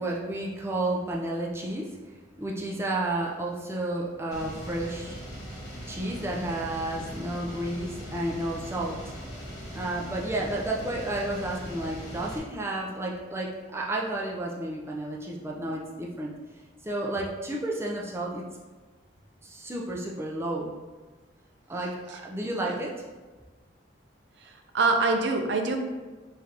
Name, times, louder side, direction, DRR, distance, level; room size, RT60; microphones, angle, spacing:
voice 1, 0.0-5.2 5.9-9.1 9.7-16.3 16.8-18.4 19.4-20.7 21.7-21.9 22.2-22.9, right 1 dB, 15° right, -3 dB, 0.5 m, -31 dB
sound 1, 4.3-12.4, equal, 20° left, 1.0 m, -40 dB
voice 2, 22.4-22.8 24.4-25.8, right 3 dB, 70° right, 4 dB, 0.5 m, -26 dB
3.8 x 3.3 x 2.8 m, 1.3 s
head